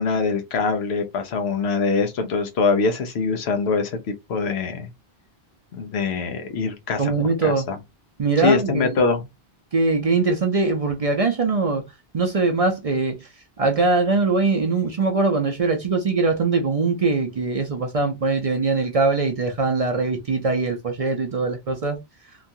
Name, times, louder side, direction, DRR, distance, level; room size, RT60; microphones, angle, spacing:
voice 1, 0.0-4.0 4.3-4.9 5.7-7.1 7.4-7.8 8.4-9.2, left 4 dB, 85° left, 1.0 m, -23 dB
voice 2, 7.0-7.7 8.2-8.9 9.7-11.8 12.1-13.3 13.6-22.0, right 3 dB, 45° right, 0.5 m, -22 dB
3.0 x 2.3 x 2.6 m
omnidirectional pair, 1.0 m